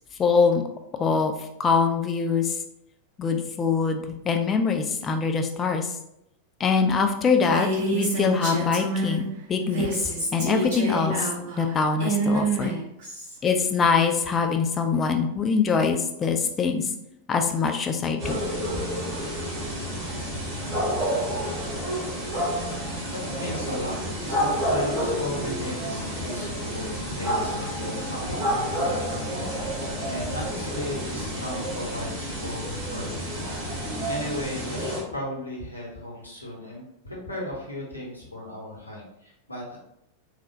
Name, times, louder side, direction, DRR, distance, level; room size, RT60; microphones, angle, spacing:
voice 1, 0.2-0.6 1.0-1.3 1.6-2.6 3.2-5.9 6.6-11.3 11.6-12.7 13.4-16.9 17.3-18.4, left 5 dB, 25° left, 5 dB, 0.3 m, -23 dB
Female speech woman speaking, 7.4-9.2 9.6-13.4, right 2 dB, 55° right, 1.1 m, -28 dB
sound 1, 18.2-35.0, equal, 35° right, 1.4 m, -29 dB
voice 2, 23.1-39.8, left 1 dB, 80° left, -3 dB, 0.8 m, -36 dB
3.2 x 2.0 x 2.7 m, 0.79 s
figure-of-eight pair, 90°, 0 cm